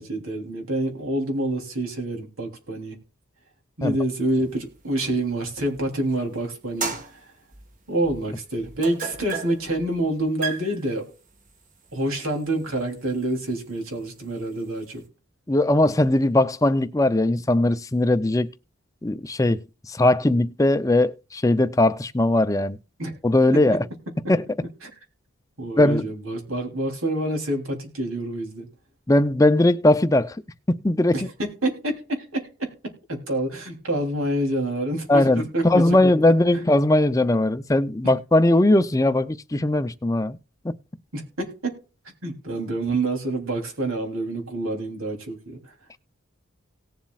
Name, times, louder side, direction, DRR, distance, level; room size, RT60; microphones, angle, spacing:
voice 1, 0.0-3.0 3.8-7.3 7.9-11.1 11.9-15.0 23.0-23.2 23.7-23.8 24.2-24.3 24.8-24.9 25.6-28.7 31.1-36.1 36.5-36.7 41.1-41.8 42.2-45.6, right 1 dB, 90° right, 3.2 m, -27 dB
sound 1, 4.2-6.1 6.5-15.1, right 4 dB, 40° right, 1.3 m, -37 dB
voice 2, 15.5-18.5 19.0-19.6 19.9-22.8 23.2-23.8 24.3-24.4 25.8-26.1 29.1-30.4 30.7-31.3 35.1-40.4 40.6-40.7, left 1 dB, 15° left, 0.5 m, -19 dB
18.5 x 7.2 x 2.4 m
head